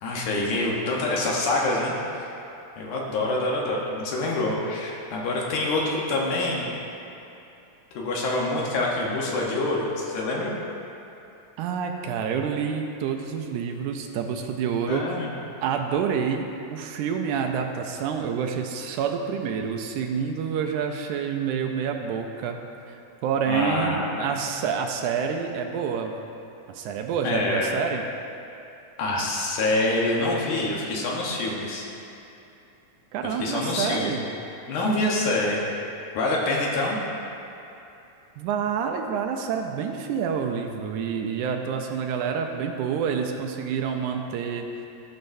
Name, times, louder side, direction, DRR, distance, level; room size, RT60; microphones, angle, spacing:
voice 1, 0.0-2.2 2.8-6.7 8.0-10.5 14.9-15.3 23.5-24.3 27.2-27.7 29.0-31.9 33.4-34.1 34.7-35.6 36.1-37.0, left 2 dB, 75° left, -2 dB, 2.4 m, -26 dB
voice 2, 11.6-15.2 15.6-22.6 22.9-26.1 26.7-28.0 33.1-34.3 38.4-44.7, right 6 dB, 80° right, 3 dB, 1.9 m, -28 dB
15.0 x 6.4 x 2.6 m, 2.8 s
omnidirectional pair, 3.7 m